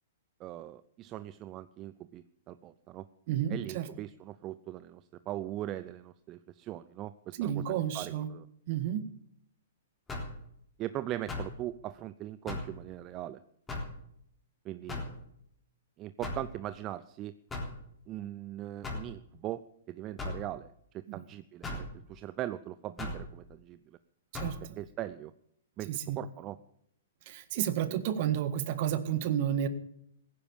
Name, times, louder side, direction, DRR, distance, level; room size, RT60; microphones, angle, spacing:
voice 1, 0.4-3.1 3.5-7.6 7.9-8.5 10.8-13.4 14.6-15.0 16.0-17.3 18.1-21.7 22.1-24.0 24.8-25.3 25.8-26.6, right 13 dB, 30° right, 13 dB, 0.5 m, -40 dB
voice 2, 3.3-3.9 7.4-8.3 8.7-9.0 21.1-21.2 24.3-24.8 25.9-26.2 27.3-29.7, right 10 dB, 50° right, 12 dB, 1.6 m, -31 dB
sound 1, 10.1-10.4 11.3-11.6 12.5-12.8 13.7-14.0 14.9-15.2 16.2-16.5 17.5-17.8 18.8-19.1 20.2-20.4 21.6-21.9 23.0-23.2 24.3-24.6, left 2 dB, 15° left, 3.7 m, -37 dB
16.0 x 10.0 x 7.1 m, 0.71 s
hypercardioid pair, 135°, 0 cm